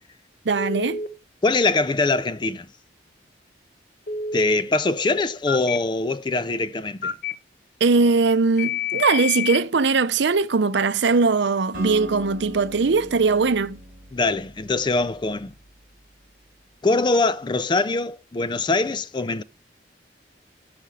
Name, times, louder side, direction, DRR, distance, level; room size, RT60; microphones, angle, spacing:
voice 1, 0.5-1.0 7.8-13.8, right 4 dB, 75° right, 0.6 m, -20 dB
Telephone, 0.6-1.1 4.1-4.6 5.5-5.8 7.0-7.3 8.6-9.6, left 6 dB, 50° left, 0.8 m, -27 dB
voice 2, 1.4-2.7 4.3-7.1 14.1-15.5 16.8-19.4, left 3 dB, 25° left, 0.4 m, -23 dB
Acoustic guitar, 11.7-15.8, equal, 50° right, 4.8 m, -39 dB
12.0 x 5.1 x 6.3 m
head